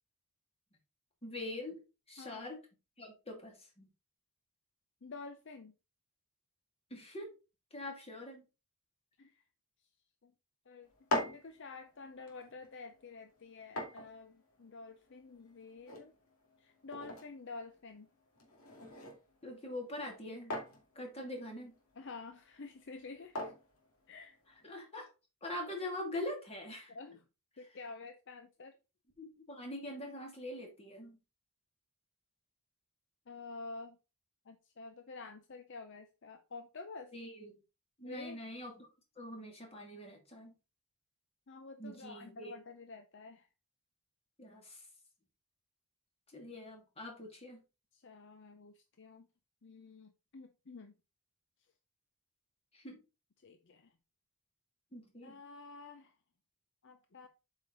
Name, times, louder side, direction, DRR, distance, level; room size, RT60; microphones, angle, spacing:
voice 1, 1.2-2.6 3.0-3.9 6.9-7.4 7.7-8.4 19.4-20.5 20.9-21.8 24.6-25.1 25.4-26.9 29.2-31.2 37.1-37.5 38.0-38.9 39.2-40.5 41.8-42.5 44.4-44.8 46.3-47.6 52.7-53.0 54.9-55.4, left 1 dB, 25° left, 2.8 m, -44 dB
voice 2, 5.0-5.7 9.2-9.4 10.2-10.3 10.7-11.0 11.3-16.1 16.6-18.1 22.0-23.5 24.1-24.4 26.9-27.3 27.6-28.7 33.3-34.0 34.5-37.1 38.0-38.4 41.5-43.5 47.9-49.3 49.6-50.9 53.4-53.9 55.2-56.1 56.8-57.3, left 3 dB, 55° left, 0.7 m, -49 dB
sound 1, 10.8-24.7, left 1 dB, 75° left, 2.5 m, -44 dB
8.0 x 5.2 x 4.0 m
head